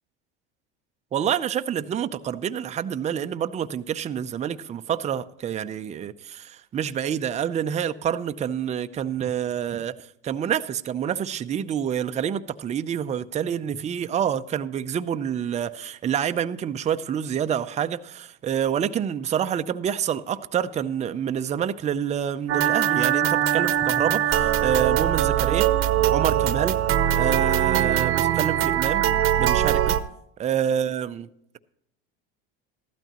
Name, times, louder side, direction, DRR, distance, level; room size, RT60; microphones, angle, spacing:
voice 1, 1.1-10.0 10.2-25.7 26.1-26.8 27.1-29.0 29.4-30.0 30.4-31.3, right 9 dB, 25° right, 0.5 m, -27 dB
sound 1, 22.5-30.0, right 11 dB, 45° right, 0.8 m, -22 dB
15.0 x 12.5 x 2.9 m
supercardioid pair, 105°, 30 cm